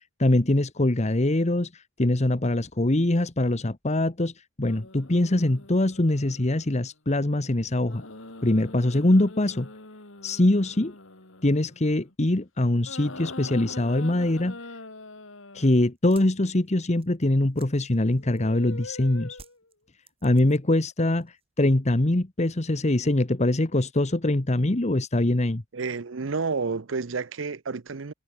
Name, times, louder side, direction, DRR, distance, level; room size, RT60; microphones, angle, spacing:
voice 1, 0.0-4.3 4.6-8.0 8.4-9.7 10.2-10.9 11.4-14.6 15.5-19.4 20.2-25.6, left 1 dB, 35° left, 1.2 m, -23 dB
sound 1, 4.7-6.8 7.9-12.1 12.8-15.8 18.1-19.7 20.9-21.1, left 2 dB, 80° left, 4.0 m, -43 dB
sound 2, 15.9-18.7 19.3-20.9 21.1-21.7, right 5 dB, 30° right, 7.4 m, -54 dB
voice 2, 25.7-28.1, right 4 dB, 75° right, 0.7 m, -30 dB
head